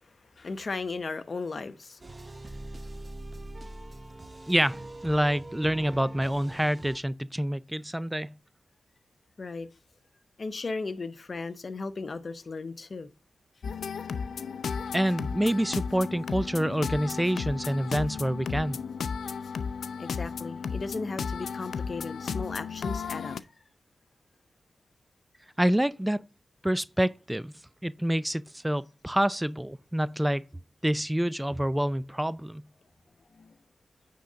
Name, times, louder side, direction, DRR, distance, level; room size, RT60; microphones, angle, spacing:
voice 1, 0.4-2.0 9.4-9.7 10.4-13.1 20.0-23.4 33.3-33.5, left 3 dB, 55° left, 0.9 m, -36 dB
sound 1, 2.0-7.0, right 1 dB, 35° right, 0.8 m, -43 dB
voice 2, 4.5-8.4 14.9-18.8 25.6-26.3 26.6-27.5 27.8-30.4 30.8-32.6, equal, 10° right, 0.4 m, -27 dB
sound 2, 13.6-23.4, left 6 dB, 80° left, 0.5 m, -34 dB
9.3 x 3.8 x 5.1 m
cardioid pair, 45°, 0 cm